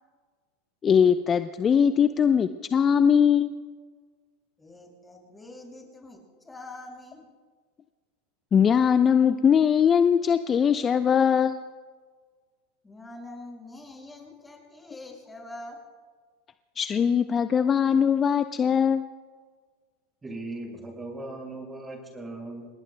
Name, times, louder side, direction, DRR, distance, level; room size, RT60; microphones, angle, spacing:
voice 1, 0.8-3.5 8.5-11.6 16.8-19.0, left 7 dB, 30° left, 10 dB, 0.6 m, -21 dB
voice 2, 4.6-7.3 12.8-15.8, left 2 dB, 15° left, 0 dB, 6.0 m, -44 dB
voice 3, 20.2-22.7, right 2 dB, 15° right, 1 dB, 5.8 m, -38 dB
29.0 x 19.0 x 2.2 m, 1.5 s
hypercardioid pair, 90°, 0 cm